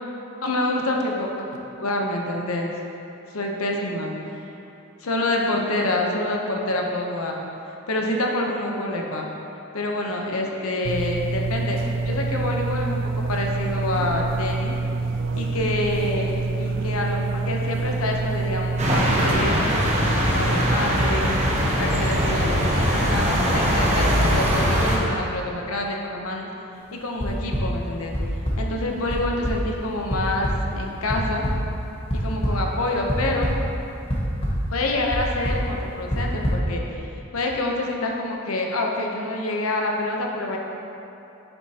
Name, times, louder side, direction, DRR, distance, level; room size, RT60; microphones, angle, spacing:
voice 1, 0.4-1.5 1.8-2.7 3.3-4.4 5.0-7.4 7.9-9.3 9.7-11.8 12.1-14.7 15.3-19.7 20.2-21.3 21.8-26.5 26.9-28.1 28.6-31.4 32.1-33.5 34.7-37.1 37.3-40.6, left 2 dB, 85° left, 0 dB, 0.9 m, -27 dB
sound 1, 10.9-19.4, right 3 dB, 60° right, 0.3 m, -26 dB
sound 2, 18.8-25.0, equal, 30° right, 1.0 m, -21 dB
sound 3, 27.2-27.6 28.1-28.6 29.1-29.2 29.4-29.5 30.1-30.2 30.4-30.5 31.1-31.5 32.1-32.5 33.1-33.6 34.1-34.5 35.1-35.2 35.4-35.6 36.1-36.5, equal, 30° left, 1.1 m, -24 dB
8.1 x 7.2 x 2.9 m, 2.9 s
head